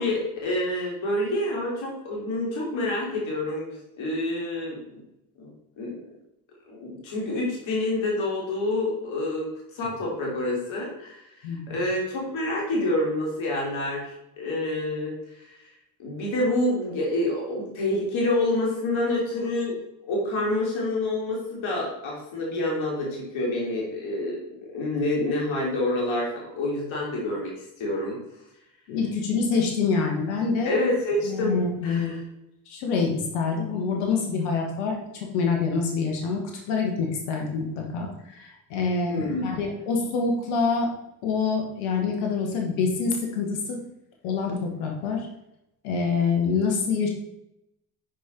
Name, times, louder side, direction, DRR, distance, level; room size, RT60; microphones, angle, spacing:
voice 1, 0.0-5.0 5.4-6.0 6.7-15.5 16.0-19.8 20.0-27.5 27.8-28.2 30.7-31.6 31.8-32.2 39.1-39.5, left 1 dB, 70° left, -3 dB, 3.3 m, -28 dB
voice 2, 11.4-11.8 28.9-30.7 31.2-32.1 32.7-40.9 41.2-43.8 44.2-45.3 45.8-47.1, left 4 dB, 85° left, 1 dB, 1.6 m, -26 dB
9.7 x 5.2 x 4.3 m, 0.84 s
supercardioid pair, 55°, 49 cm